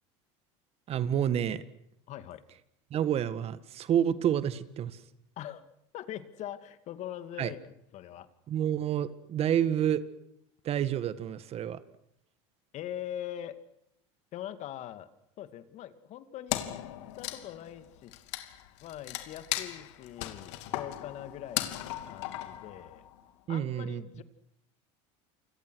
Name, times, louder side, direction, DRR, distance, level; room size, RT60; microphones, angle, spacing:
voice 1, 0.9-1.6 2.9-5.0 7.4-7.5 8.5-10.0 10.6-11.8 23.5-24.0, right 10 dB, 40° right, 14 dB, 1.8 m, -29 dB
voice 2, 2.1-2.4 5.4-5.6 5.9-8.3 12.7-13.6 14.3-15.1 15.4-16.7 17.2-18.1 18.8-23.1 23.5-24.2, left 11 dB, 50° left, 12 dB, 2.3 m, -42 dB
Wood, 16.5-23.2, left 15 dB, 75° left, 2.7 m, -37 dB
29.0 x 25.5 x 6.4 m, 0.78 s
supercardioid pair, 105°, 15 cm